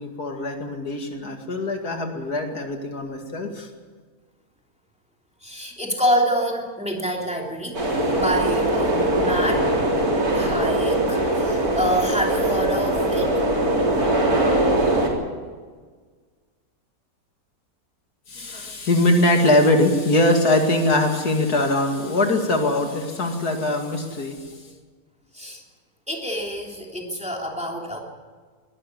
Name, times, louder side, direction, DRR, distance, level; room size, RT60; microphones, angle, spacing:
voice 1, 0.0-3.7 18.3-24.6, left 1 dB, 70° left, 3 dB, 2.7 m, -22 dB
voice 2, 5.4-7.8 8.1-9.6 10.3-13.3 25.3-25.6 26.1-28.0, equal, 5° right, 0 dB, 3.1 m, -26 dB
sound 1, 7.7-15.1, right 1 dB, 65° right, 4.3 m, -21 dB
21.0 x 13.0 x 9.7 m, 1.5 s
omnidirectional pair, 1.7 m